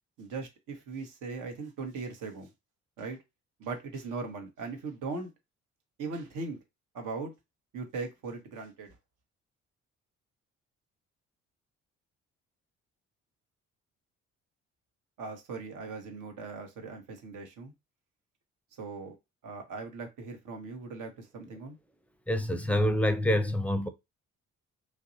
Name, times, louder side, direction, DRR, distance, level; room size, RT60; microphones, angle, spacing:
voice 1, 0.2-2.5 3.0-3.2 3.6-5.3 6.0-6.6 6.9-7.3 7.7-9.0 15.2-17.7 18.8-19.1 19.4-21.8, right 4 dB, 65° right, 1.1 m, -39 dB
voice 2, 22.3-23.9, left 1 dB, 5° left, 0.6 m, -26 dB
3.2 x 2.6 x 2.6 m
hypercardioid pair, 50°, 35 cm